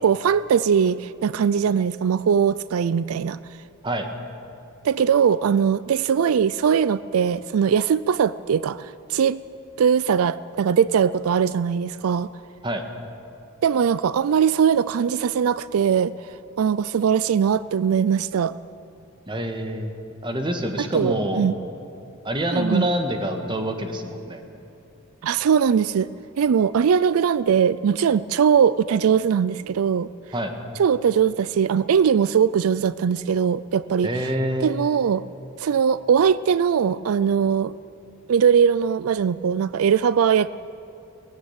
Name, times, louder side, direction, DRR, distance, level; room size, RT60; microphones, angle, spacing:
voice 1, 0.0-3.4 4.8-9.4 9.8-12.3 13.6-18.5 20.8-21.5 22.5-22.9 25.2-26.1 26.4-30.1 30.8-34.3 34.6-35.2 35.6-37.8 38.3-40.5, right 7 dB, 85° right, 17 dB, 0.4 m, -20 dB
voice 2, 19.3-19.9 20.2-21.5 22.2-24.4 30.3-30.5 34.0-34.8, right 1 dB, 25° right, 5 dB, 1.7 m, -26 dB
19.0 x 15.5 x 8.8 m, 2.8 s
head